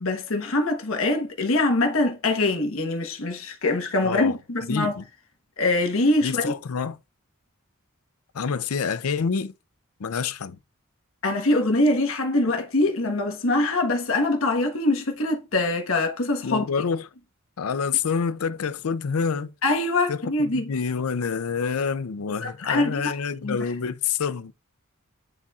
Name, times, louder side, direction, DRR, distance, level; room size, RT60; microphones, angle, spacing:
voice 1, 0.0-5.0 5.6-6.5 11.2-16.6 19.6-20.7 22.4-23.2 23.4-23.7, left 2 dB, 70° left, 1.2 m, -23 dB
voice 2, 4.0-4.4 4.7-5.0 6.2-7.0 8.3-9.5 10.0-10.6 16.4-17.1 17.6-19.5 20.1-20.2 20.5-24.5, left 6 dB, 90° left, 0.5 m, -27 dB
9.9 x 4.2 x 2.4 m
head